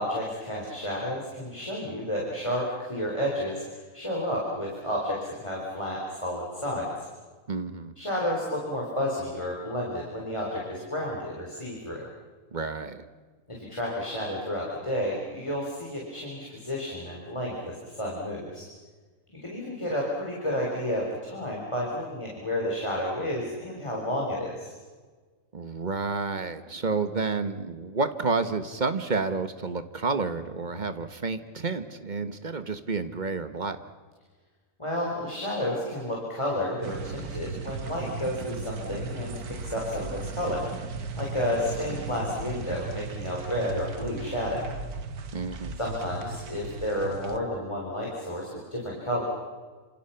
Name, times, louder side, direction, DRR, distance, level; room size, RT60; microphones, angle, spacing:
voice 1, 0.0-7.1 8.0-12.0 13.5-18.7 19.4-24.7 34.8-40.7 41.1-44.7 45.8-49.2, equal, 20° left, -3 dB, 4.3 m, -31 dB
voice 2, 7.5-7.9 12.5-13.0 25.5-33.8 45.3-45.8, right 4 dB, 35° right, 10 dB, 1.3 m, -30 dB
sound 1, 36.8-47.4, right 4 dB, 90° right, 1.8 m, -37 dB
28.0 x 27.0 x 5.8 m, 1.4 s
omnidirectional pair, 1.5 m